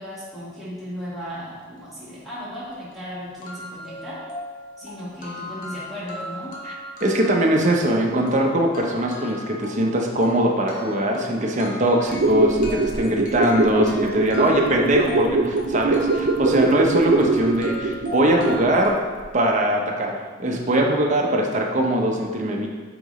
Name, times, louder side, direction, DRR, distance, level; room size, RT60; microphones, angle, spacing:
voice 1, 0.0-4.2 4.8-6.5, equal, ahead, -11 dB, 1.3 m, -36 dB
sound 1, 2.4-2.5 2.9-3.0 3.4-18.9, left 1 dB, 45° left, 1.0 m, -38 dB
voice 2, 7.0-18.9 19.3-22.7, right 1 dB, 40° right, 1 dB, 0.8 m, -21 dB
sound 2, 12.0-18.9 19.2-19.3, right 3 dB, 65° right, 0.5 m, -23 dB
8.6 x 3.9 x 3.1 m, 1.5 s
head